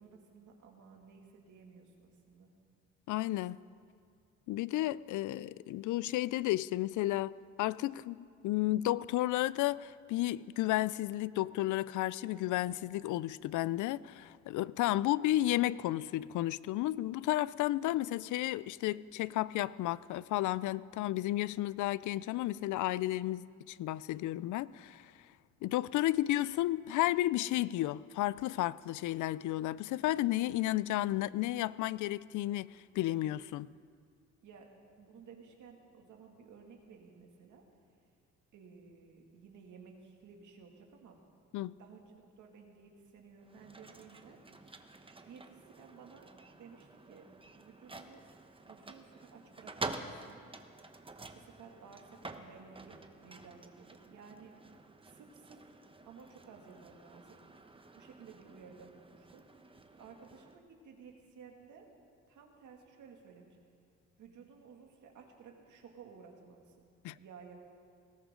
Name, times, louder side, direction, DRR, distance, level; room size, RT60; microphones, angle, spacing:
voice 1, 0.0-2.5 34.4-34.7 35.0-37.6 38.5-41.2 41.6-44.4 45.2-47.3 47.5-48.2 48.7-50.4 51.3-54.5 55.0-55.6 56.0-57.4 57.9-59.4 60.0-61.9 62.3-63.6 64.2-66.9 67.2-67.6, right 5 dB, 75° right, 1 dB, 2.4 m, -55 dB
voice 2, 3.1-3.6 4.5-7.3 7.6-25.0 25.6-33.7 41.5-41.7 67.0-67.2, left 15 dB, 75° left, 19 dB, 0.5 m, -32 dB
sound 1, 43.4-60.6, right 3 dB, 15° right, 1.0 m, -49 dB
19.0 x 17.0 x 3.8 m, 2.2 s
cardioid pair, 90°, 30 cm